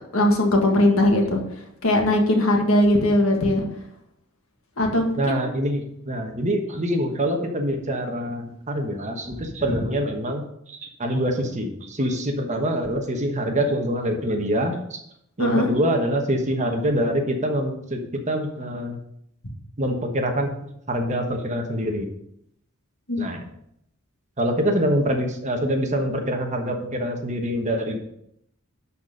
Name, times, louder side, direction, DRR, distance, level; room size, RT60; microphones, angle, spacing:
voice 1, 0.1-1.4 1.8-3.7 4.8-5.4 15.4-15.7 23.1-23.3, left 1 dB, 65° left, 2 dB, 1.7 m, -19 dB
voice 2, 5.2-15.0 15.4-19.0 19.8-20.5 20.9-22.1 23.2-23.5 24.4-28.0, equal, 35° right, 3 dB, 1.2 m, -25 dB
11.5 x 4.3 x 5.1 m, 0.76 s
head